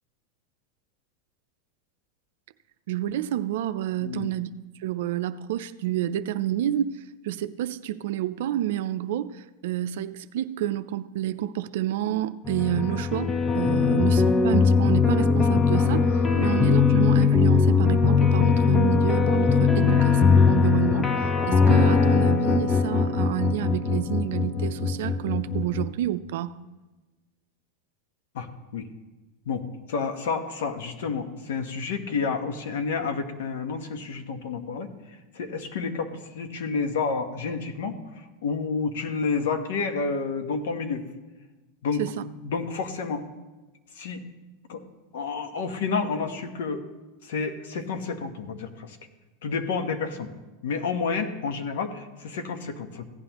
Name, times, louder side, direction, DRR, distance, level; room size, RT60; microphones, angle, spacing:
voice 1, 2.9-4.5 4.8-9.3 9.6-16.1 16.4-21.1 21.5-26.6 42.0-42.2, right 12 dB, 75° right, 0.4 m, -29 dB
voice 2, 4.0-4.3 13.8-14.0 16.4-16.5 19.8-20.0 28.3-28.5 28.7-28.9 29.5-29.6 29.9-34.9 35.3-38.0 38.4-41.0 41.8-42.0 42.3-43.2 44.0-44.2 44.7-44.8 45.1-46.8 47.2-49.0 49.4-50.3 50.6-53.0, left 5 dB, 80° left, 1.1 m, -30 dB
sound 1, 12.4-25.9, left 5 dB, 20° left, 0.6 m, -21 dB
16.0 x 9.4 x 3.0 m
supercardioid pair, 120°, 0 cm